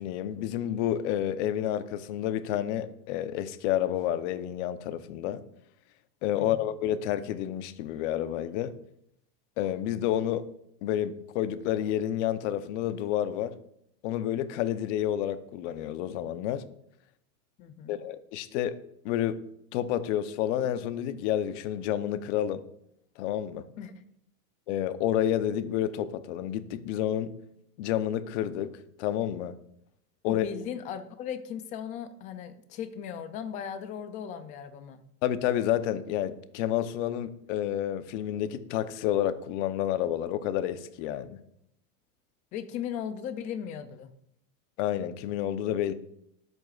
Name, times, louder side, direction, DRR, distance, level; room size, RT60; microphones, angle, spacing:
voice 1, 0.0-5.4 6.2-8.7 9.6-10.5 10.8-13.5 14.0-16.6 17.9-18.8 19.0-19.4 19.7-22.6 23.2-23.7 24.7-27.3 27.8-28.7 29.0-29.5 30.2-30.5 35.2-41.4 44.8-45.9, left 11 dB, 50° left, 11 dB, 0.9 m, -29 dB
voice 2, 17.6-18.0 23.8-23.9 30.2-35.0 42.5-44.1, left 8 dB, 20° left, 10 dB, 0.3 m, -37 dB
20.0 x 8.1 x 2.4 m, 0.75 s
supercardioid pair, 145°, 45 cm